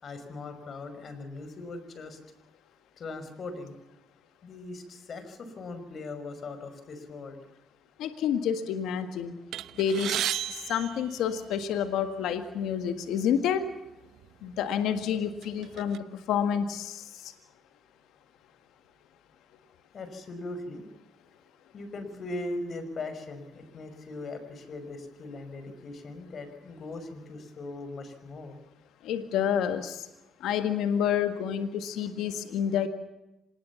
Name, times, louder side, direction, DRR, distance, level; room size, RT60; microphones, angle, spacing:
voice 1, 0.0-2.2 3.0-3.7 4.4-7.4 19.9-20.9 21.7-28.5, left 2 dB, 55° left, 10 dB, 5.5 m, -39 dB
voice 2, 8.0-9.4 9.8-10.2 10.5-13.6 14.4-17.3 29.0-30.1 30.4-32.9, left 8 dB, 85° left, 8 dB, 1.7 m, -29 dB
sound 1, 9.5-11.9 12.7-12.8 13.1-13.3 14.2-14.3 14.8-16.0, right 11 dB, 80° right, 0.9 m, -34 dB
26.5 x 19.5 x 7.2 m, 0.95 s
cardioid pair, 90°, 0 cm